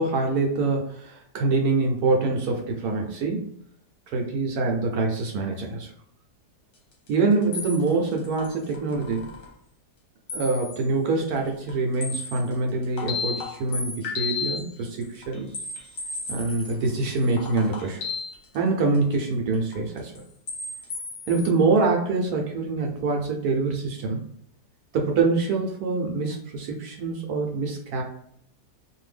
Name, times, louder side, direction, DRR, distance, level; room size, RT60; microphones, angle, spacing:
voice 1, 0.0-3.5 4.1-5.9 7.1-9.2 10.3-15.5 16.3-18.0 18.5-20.2 21.3-24.2 24.9-28.0, right 3 dB, 70° right, 1 dB, 1.1 m, -25 dB
sound 1, 7.1-7.2 7.5-9.5 10.3-10.8 11.2-12.5 12.8-14.7 15.0-19.1 19.5-20.2 20.5-21.5, left 4 dB, 60° left, 1.1 m, -34 dB
2.7 x 2.6 x 3.3 m, 0.68 s
omnidirectional pair, 1.8 m